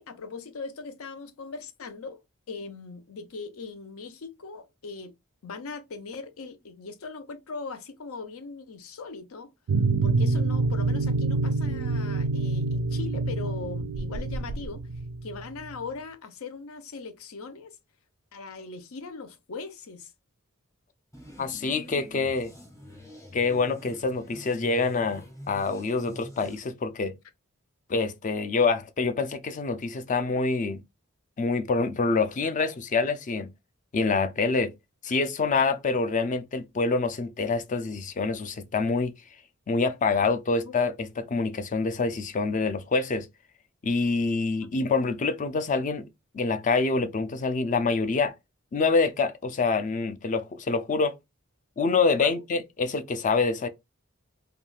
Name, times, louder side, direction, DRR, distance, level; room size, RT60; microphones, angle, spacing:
voice 1, 0.0-2.2 2.5-5.1 5.4-9.5 10.0-14.8 15.2-17.8 18.3-20.1 40.6-40.7 52.2-52.4, left 4 dB, 85° left, 0.6 m, -40 dB
sound 1, 9.7-15.6, right 3 dB, 65° right, 0.3 m, -26 dB
sound 2, 21.1-26.6, equal, 15° left, 0.8 m, -46 dB
voice 2, 21.4-22.5 23.3-27.1 27.9-30.8 31.4-33.5 33.9-34.7 35.0-39.1 39.7-43.3 43.8-46.1 46.3-48.3 48.7-51.1 51.8-53.7, left 4 dB, 35° left, 0.4 m, -26 dB
3.5 x 2.3 x 2.3 m
head